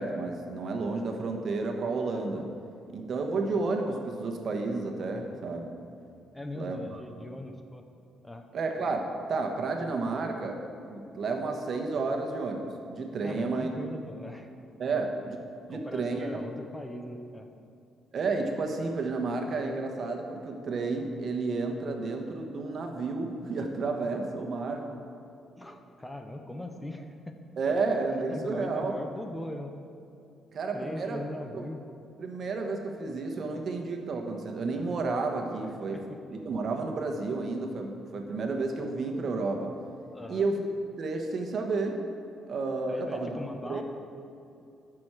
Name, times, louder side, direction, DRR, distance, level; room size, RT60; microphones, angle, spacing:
voice 1, 0.0-2.4 2.9-5.7 6.5-7.0 8.5-10.6 10.9-13.7 14.8-15.4 15.7-16.4 18.1-24.8 27.6-29.0 30.5-31.2 31.5-31.7 32.2-36.0 36.3-39.7 40.3-40.6 41.0-42.0 42.5-43.4 43.7-43.8, right 3 dB, 55° right, 3 dB, 1.3 m, -31 dB
voice 2, 6.3-7.8 8.2-8.4 13.2-14.5 14.9-15.0 15.7-17.5 25.6-27.4 28.3-29.7 30.7-31.8 35.9-36.2 40.1-40.5 42.9-43.8, left 1 dB, 10° left, 5 dB, 0.9 m, -40 dB
13.5 x 6.2 x 4.9 m, 2.6 s
cardioid pair, 90°, 0 cm